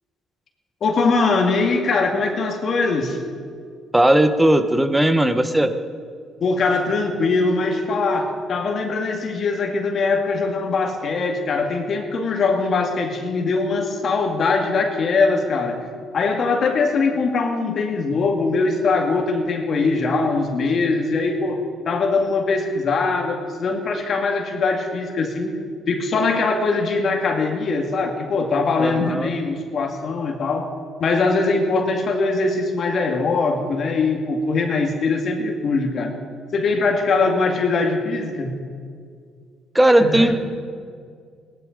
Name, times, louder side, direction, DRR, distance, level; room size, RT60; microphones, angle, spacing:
voice 1, 0.8-3.2 6.4-15.8 16.1-25.6 25.9-30.7 31.0-36.2 36.5-38.5 40.0-40.3, left 3 dB, 55° left, 2 dB, 2.1 m, -21 dB
voice 2, 3.9-5.7 28.8-29.3 39.7-40.3, right 1 dB, 10° right, 9 dB, 1.1 m, -17 dB
18.0 x 11.0 x 5.3 m, 2.1 s
supercardioid pair, 75°, 0 cm